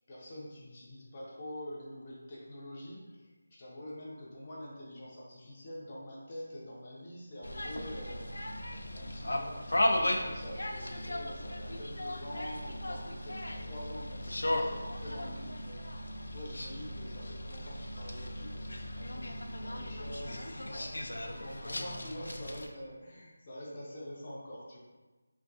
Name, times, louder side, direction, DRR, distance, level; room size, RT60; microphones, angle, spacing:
voice 1, 0.1-8.5 8.8-24.8, left 1 dB, 30° left, -5 dB, 0.6 m, -46 dB
sound 1, 7.4-22.7, left 1 dB, 85° left, 0.4 m, -36 dB
3.4 x 2.4 x 2.3 m, 1.2 s
figure-of-eight pair, 170°, 0 cm